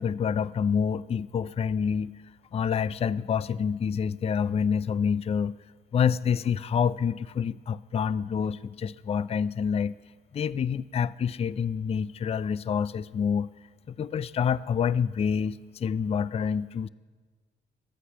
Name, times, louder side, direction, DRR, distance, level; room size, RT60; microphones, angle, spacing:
voice 1, 0.0-2.1 2.5-5.6 5.9-9.9 10.3-13.5 13.9-16.9, left 7 dB, 30° left, 18 dB, 0.4 m, -27 dB
21.5 x 8.3 x 5.9 m, 1.4 s
cardioid pair, 90°, 20 cm